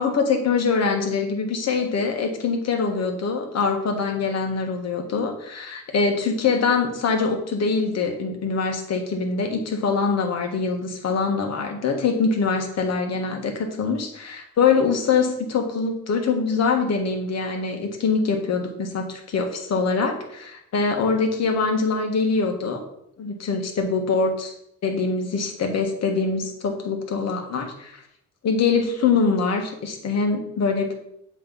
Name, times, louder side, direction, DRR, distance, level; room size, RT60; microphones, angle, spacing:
voice 1, 0.0-22.8 23.2-24.5 24.8-28.0 28.4-30.9, left 4 dB, 60° left, 3 dB, 1.4 m, -23 dB
7.6 x 3.2 x 5.5 m, 0.75 s
cardioid pair, 90°, 30 cm